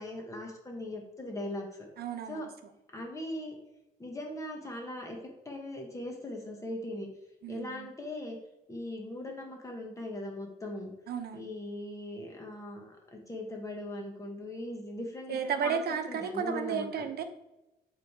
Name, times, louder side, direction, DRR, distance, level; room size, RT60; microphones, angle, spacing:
voice 1, 0.0-1.9 2.3-2.5 2.9-3.6 4.0-5.2 5.4-7.1 7.5-8.4 8.7-10.9 11.3-17.1, left 1 dB, 20° left, 1 dB, 1.1 m, -39 dB
voice 2, 2.0-2.5 7.4-7.9 11.1-11.5 15.3-17.2, right 7 dB, 70° right, 7 dB, 0.9 m, -33 dB
7.9 x 3.3 x 4.6 m, 0.96 s
cardioid pair, 140°, 17 cm